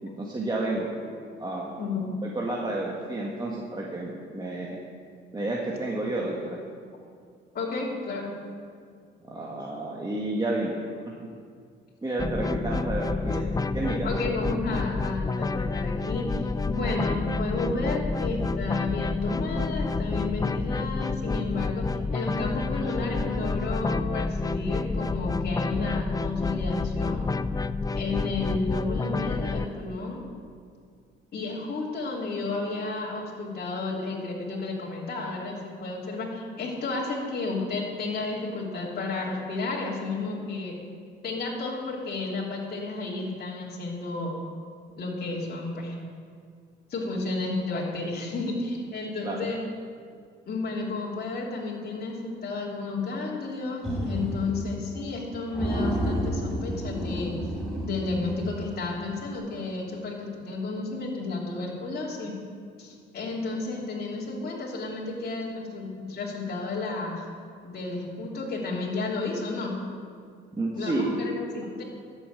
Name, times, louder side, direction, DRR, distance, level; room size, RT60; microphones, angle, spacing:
voice 1, 0.0-0.9 1.4-1.7 2.2-4.8 5.3-6.6 9.2-10.7 12.0-13.4 13.7-14.1 49.2-49.5 70.6-71.1, right 2 dB, 20° right, -3 dB, 1.9 m, -30 dB
voice 2, 1.8-2.1 5.9-6.0 7.5-8.3 14.0-27.2 27.9-30.3 31.3-40.8 41.2-44.4 45.0-45.9 46.9-49.6 50.5-57.3 57.8-62.4 62.8-67.2 67.6-69.8 70.7-71.8, left 3 dB, 50° left, -4 dB, 3.1 m, -32 dB
sound 1, 12.2-29.7, left 3 dB, 20° left, 0.4 m, -29 dB
sound 2, 53.8-54.8 55.1-55.2 55.5-58.9, equal, ahead, 4.3 m, -30 dB
12.5 x 7.3 x 9.0 m, 2.2 s
cardioid pair, 90°, 20 cm